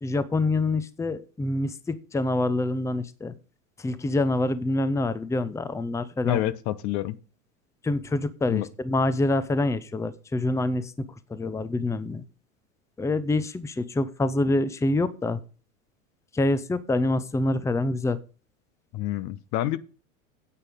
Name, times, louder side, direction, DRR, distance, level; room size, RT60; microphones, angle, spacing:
voice 1, 0.0-3.3 3.8-6.5 7.8-12.2 13.0-15.4 16.3-18.2, left 2 dB, 5° left, 0.8 m, -26 dB
voice 2, 6.2-7.2 8.5-8.7 18.9-19.8, left 14 dB, 45° left, 0.9 m, -27 dB
9.8 x 8.2 x 5.3 m
hypercardioid pair, 90°, 40 cm